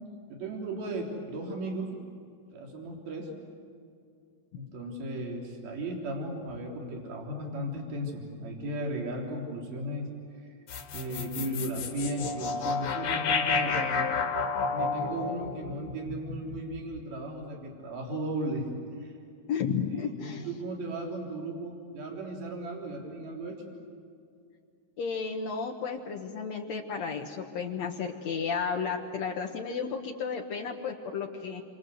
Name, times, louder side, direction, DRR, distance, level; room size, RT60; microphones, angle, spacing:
voice 1, 0.3-1.9 2.5-3.3 4.5-10.1 10.9-14.1 14.4-18.7 19.0-19.2 20.0-23.6, right 1 dB, 60° right, 0 dB, 5.3 m, -36 dB
sound 1, 10.7-17.0, left 4 dB, 55° left, 2.6 m, -31 dB
voice 2, 19.5-20.5 25.0-31.6, left 6 dB, 75° left, 1 dB, 1.5 m, -33 dB
29.0 x 26.0 x 7.9 m, 2.4 s
omnidirectional pair, 5.1 m